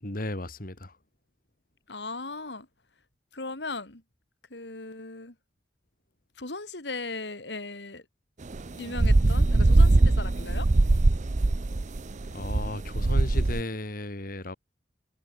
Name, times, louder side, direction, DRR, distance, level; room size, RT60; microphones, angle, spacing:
voice 1, 0.0-1.0 12.3-14.6, left 1 dB, 55° left, 3.0 m, -35 dB
voice 2, 1.9-2.7 3.3-4.0 4.5-5.3 6.4-8.0 8.8-10.7, left 3 dB, 75° left, 3.4 m, -37 dB
sound 1, 8.5-13.6, right 2 dB, 45° right, 0.6 m, -21 dB
head